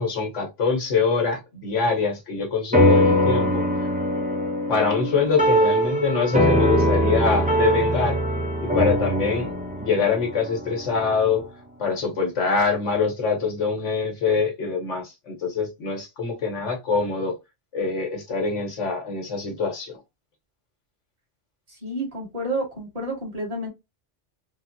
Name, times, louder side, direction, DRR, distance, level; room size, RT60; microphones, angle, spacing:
voice 1, 0.0-3.6 4.7-8.2 8.6-9.5 9.8-11.5 11.8-17.4 17.7-20.0, left 5 dB, 80° left, 1.4 m, -24 dB
sound 1, 2.7-11.4, equal, 15° right, 0.3 m, -22 dB
voice 2, 21.7-23.7, right 1 dB, 30° right, 1.4 m, -30 dB
3.5 x 2.0 x 2.6 m
omnidirectional pair, 1.2 m